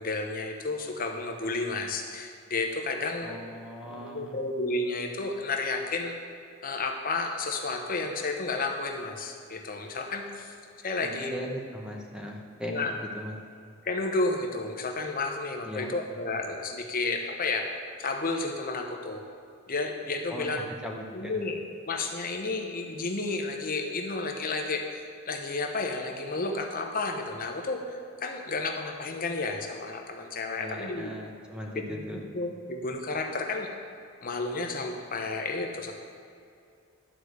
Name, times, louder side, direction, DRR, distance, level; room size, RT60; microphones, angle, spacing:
voice 1, 0.0-3.4 3.8-6.1 6.6-10.5 10.8-11.6 12.7-12.9 13.8-17.7 18.0-19.2 19.7-20.7 21.1-21.6 21.9-31.1 31.9-33.7 34.2-35.9, left 3 dB, 40° left, 3 dB, 0.9 m, -32 dB
voice 2, 3.2-4.4 11.0-12.8 13.1-13.4 15.6-15.9 20.3-21.4 30.6-32.2, equal, 5° right, 0 dB, 1.0 m, -38 dB
11.5 x 4.9 x 8.0 m, 2.4 s
head